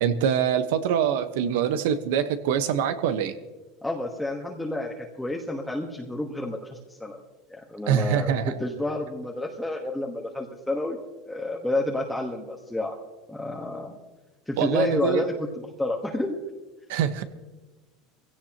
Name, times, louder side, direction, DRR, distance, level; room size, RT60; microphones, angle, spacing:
voice 1, 0.0-3.3 7.9-8.5 14.6-15.2 16.9-17.2, right 8 dB, 80° right, 10 dB, 1.2 m, -24 dB
voice 2, 3.8-7.2 7.5-8.3 8.6-11.0 11.2-13.0 13.3-14.0 14.5-16.4, left 2 dB, 5° left, 0 dB, 1.4 m, -30 dB
21.0 x 16.5 x 3.0 m, 1.2 s
supercardioid pair, 140°, 0 cm